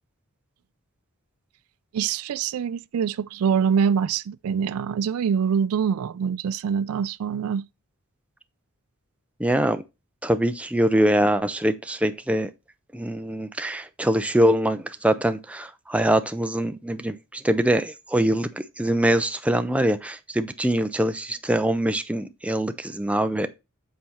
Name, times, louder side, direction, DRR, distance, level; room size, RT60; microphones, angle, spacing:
voice 1, 1.9-7.6, right 7 dB, 70° right, 0.3 m, -24 dB
voice 2, 9.4-9.8 10.2-12.5 12.9-23.5, right 1 dB, 5° right, 0.4 m, -23 dB
7.7 x 4.2 x 4.4 m
head